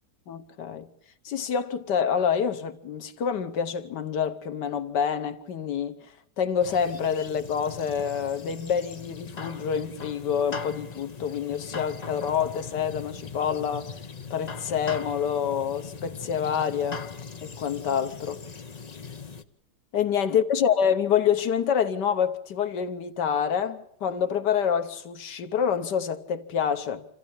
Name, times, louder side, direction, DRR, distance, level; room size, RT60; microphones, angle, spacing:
voice 1, 0.3-0.9 1.3-6.0 6.4-13.9 14.3-17.0 17.4-18.4 19.9-27.1, left 7 dB, 85° left, 1.8 m, -27 dB
sound 1, 6.6-19.4, left 5 dB, 35° left, 0.8 m, -40 dB
27.5 x 14.5 x 8.7 m
omnidirectional pair, 1.8 m